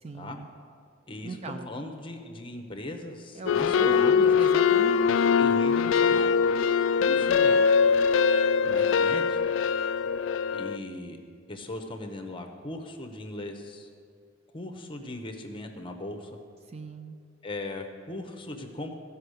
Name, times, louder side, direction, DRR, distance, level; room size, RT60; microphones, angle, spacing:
voice 1, 0.0-0.5 1.2-1.7 3.3-5.3 16.7-17.2, right 2 dB, 30° right, 7 dB, 0.4 m, -37 dB
voice 2, 1.1-4.3 5.4-6.3 7.0-7.6 8.6-9.4 10.5-11.2 11.5-13.9 14.5-16.4 17.4-18.9, left 2 dB, 25° left, 4 dB, 0.9 m, -38 dB
sound 1, 3.5-10.8, left 6 dB, 70° left, 0.3 m, -22 dB
15.5 x 5.6 x 6.5 m, 2.3 s
head